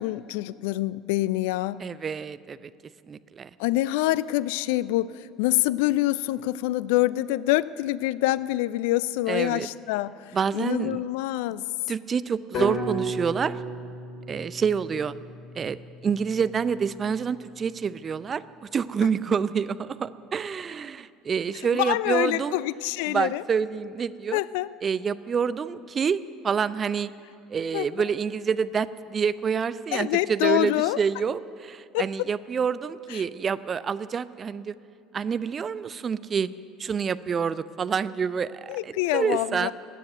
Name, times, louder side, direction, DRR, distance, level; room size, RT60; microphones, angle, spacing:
voice 1, 0.0-1.8 3.6-11.6 21.7-23.4 24.3-24.7 27.7-27.9 29.9-31.0 31.9-32.1 33.1-33.2 38.7-39.7, left 17 dB, 65° left, 19 dB, 0.3 m, -26 dB
voice 2, 1.8-2.7 3.1-3.5 9.3-9.7 10.3-11.0 11.9-13.6 14.3-15.2 15.6-15.8 16.0-22.6 23.1-24.4 24.8-27.1 27.5-34.7 35.1-36.5 36.8-39.7, right 6 dB, 35° right, 15 dB, 0.5 m, -27 dB
sound 1, 12.5-16.6, right 1 dB, 45° left, 3.6 m, -34 dB
15.5 x 9.5 x 9.4 m, 2.4 s
figure-of-eight pair, 65°, 0 cm